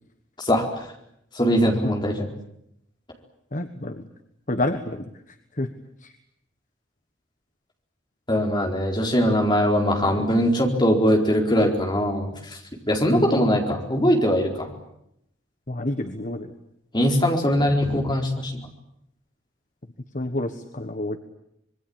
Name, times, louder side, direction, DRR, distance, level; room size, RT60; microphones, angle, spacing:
voice 1, 0.4-0.8 1.3-2.3 8.3-12.3 12.9-14.7 16.9-18.5, equal, 25° left, 2 dB, 4.4 m, -21 dB
voice 2, 3.5-4.0 4.5-5.0 5.6-5.7 6.0-6.1 13.1-13.4 15.7-16.5 20.1-21.2, left 1 dB, 40° left, 8 dB, 1.3 m, -28 dB
26.0 x 22.5 x 8.8 m, 0.78 s
head